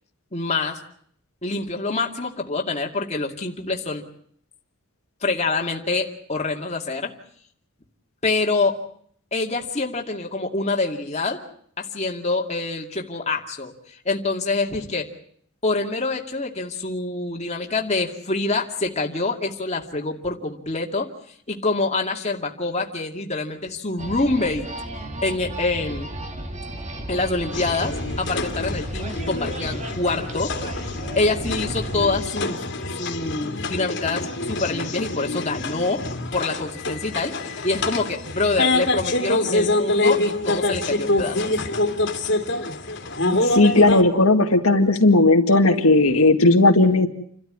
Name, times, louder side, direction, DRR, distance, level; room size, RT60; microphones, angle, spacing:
voice 1, 0.3-0.8 1.4-4.0 5.2-7.1 8.2-8.8 9.3-11.4 11.8-13.7 14.0-15.1 15.6-21.1 21.5-24.7 25.2-26.1 27.1-30.5 31.2-36.0 36.3-41.6, left 3 dB, 30° left, 1 dB, 2.4 m, -26 dB
sound 1, 24.0-32.3, right 1 dB, 30° right, 2.4 m, -34 dB
sound 2, 27.5-44.0, left 2 dB, 55° left, 2.6 m, -26 dB
voice 2, 43.4-47.1, left 2 dB, 80° left, 4 dB, 2.1 m, -16 dB
29.0 x 13.0 x 9.6 m, 0.64 s
head